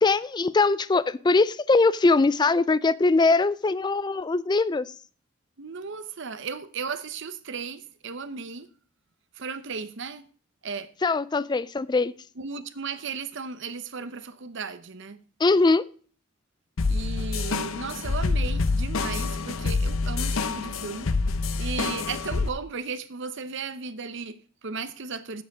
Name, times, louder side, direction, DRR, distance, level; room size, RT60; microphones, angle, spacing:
voice 1, 0.0-4.9 11.0-12.1 15.4-15.8, left 3 dB, 20° left, 0.4 m, -21 dB
voice 2, 5.6-8.7 9.3-10.2 10.6-10.9 12.4-15.2 16.9-21.1 21.6-25.4, right 5 dB, 60° right, 0.8 m, -35 dB
sound 1, 16.8-22.5, left 3 dB, 75° left, 0.7 m, -27 dB
7.8 x 6.9 x 7.2 m
head